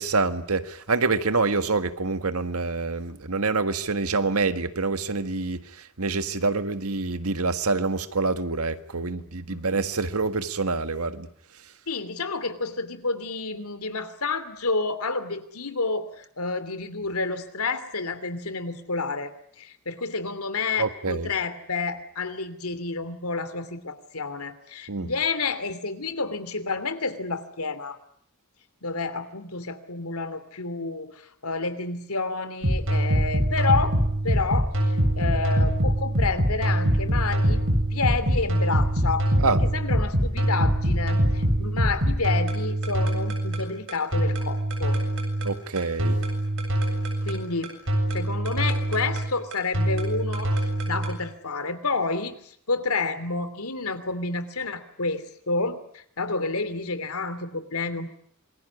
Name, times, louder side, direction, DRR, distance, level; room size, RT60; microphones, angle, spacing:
voice 1, 0.0-5.6 6.0-11.3 20.8-21.3 24.9-25.1 39.4-39.6 45.4-46.2, right 3 dB, 90° right, 10 dB, 1.7 m, -26 dB
voice 2, 11.9-19.3 19.6-28.0 28.8-34.0 34.2-37.6 37.9-45.0 47.2-47.8 48.1-58.2, left 3 dB, 85° left, 11 dB, 2.9 m, -30 dB
sound 1, 32.6-51.2, right 1 dB, 65° right, 7.5 m, -24 dB
27.0 x 21.0 x 9.8 m, 0.65 s
head